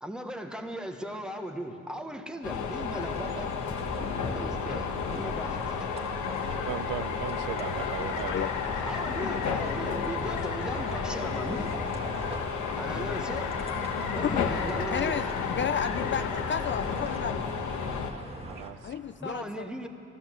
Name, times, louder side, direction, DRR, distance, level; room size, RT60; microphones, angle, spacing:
voice 1, 0.0-3.5 4.2-6.1 8.8-11.8 12.8-13.6 14.1-15.3 19.2-19.9, right 1 dB, 5° right, 5 dB, 1.2 m, -38 dB
sound 1, 2.4-18.1, left 5 dB, 70° left, 1.3 m, -32 dB
sound 2, 3.0-18.7, right 1 dB, 20° right, 1.6 m, -43 dB
Car, 3.3-17.2, left 6 dB, 90° left, 1.2 m, -40 dB
voice 2, 6.6-8.3 18.4-18.9, right 13 dB, 85° right, 15 dB, 0.5 m, -37 dB
voice 3, 14.1-15.3 15.5-17.4 18.8-19.7, left 8 dB, 40° left, 9 dB, 0.4 m, -32 dB
14.5 x 12.0 x 7.5 m, 2.9 s
cardioid pair, 90°, 30 cm